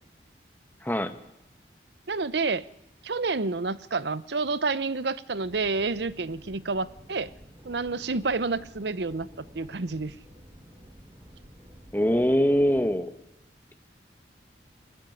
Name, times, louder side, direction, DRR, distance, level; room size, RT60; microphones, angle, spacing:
voice 1, 0.8-1.1 11.9-13.1, equal, 10° left, 9 dB, 1.4 m, -23 dB
voice 2, 2.1-2.7 3.0-7.3 7.6-10.1, right 3 dB, 70° right, 17 dB, 0.8 m, -29 dB
sound 1, 5.3-12.9, equal, 20° right, 6.1 m, -51 dB
21.0 x 15.5 x 9.8 m, 0.89 s
head